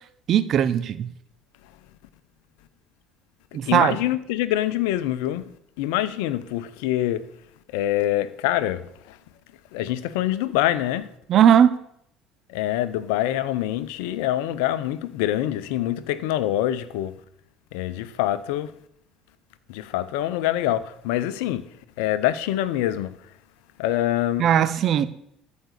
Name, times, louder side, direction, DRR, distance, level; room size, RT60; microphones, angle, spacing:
voice 1, 0.3-1.1 3.5-4.0 11.3-11.8 24.4-25.1, right 9 dB, 55° right, 1.0 m, -18 dB
voice 2, 3.7-5.5 5.8-7.2 7.7-9.2 9.7-11.1 12.5-17.2 17.7-18.7 19.7-21.6 22.0-23.2 23.8-24.5, left 13 dB, 75° left, 0.8 m, -25 dB
13.5 x 5.2 x 8.3 m
hypercardioid pair, 65°, 0 cm